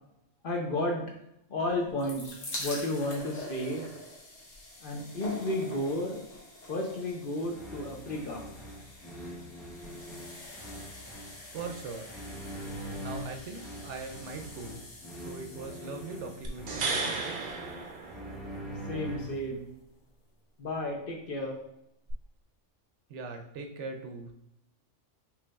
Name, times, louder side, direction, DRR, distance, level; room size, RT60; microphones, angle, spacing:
voice 1, 0.4-1.0 1.5-3.9 4.8-6.2 6.7-8.5 18.9-19.7 20.6-21.6, left 1 dB, 50° left, 0 dB, 0.9 m, -32 dB
sound 1, 1.7-18.8 19.5-19.6 19.8-19.9, left 1 dB, 75° left, 1.6 m, -46 dB
sound 2, 7.5-19.6, equal, ahead, 0.5 m, -43 dB
voice 2, 11.5-12.1 13.0-14.8 15.2-17.6 23.1-24.3, right 4 dB, 70° right, 4 dB, 0.9 m, -41 dB
sound 3, 16.4-18.7 22.1-22.2, right 4 dB, 45° right, 0.6 m, -34 dB
5.9 x 3.2 x 2.3 m, 0.80 s
omnidirectional pair, 1.3 m